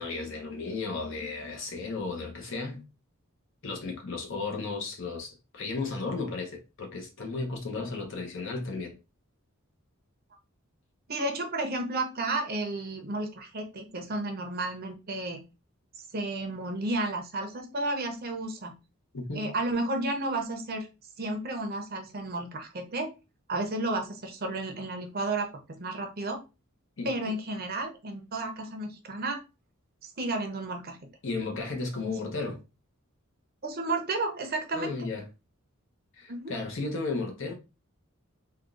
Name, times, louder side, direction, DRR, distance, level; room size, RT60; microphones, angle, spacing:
voice 1, 0.0-2.8 3.6-9.0 19.1-19.5 27.0-27.1 31.2-32.6 34.7-35.2 36.2-37.5, left 3 dB, 60° left, 0.9 m, -34 dB
voice 2, 11.1-15.4 16.1-18.7 19.3-20.9 21.2-23.1 23.5-26.4 27.0-29.4 30.0-31.0 33.6-34.9 36.3-36.5, right 2 dB, 45° right, 0.7 m, -32 dB
3.6 x 2.3 x 2.5 m
head